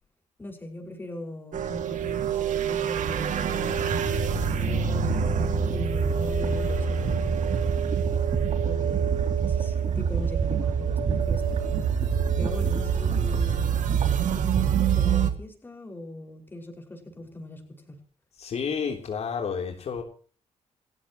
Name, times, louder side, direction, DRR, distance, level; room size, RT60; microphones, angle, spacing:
voice 1, 0.4-3.9 4.3-5.1 5.7-7.8 8.6-11.6 12.4-13.9 14.2-18.0, left 1 dB, 15° left, 5.6 m, -40 dB
sound 1, 1.5-15.3, right 7 dB, 80° right, 2.3 m, -26 dB
sound 2, 3.6-15.1, right 5 dB, 60° right, 3.6 m, -32 dB
voice 2, 18.4-20.0, left 6 dB, 60° left, 3.4 m, -30 dB
29.5 x 15.0 x 3.1 m
wide cardioid pair, 155°, 13 cm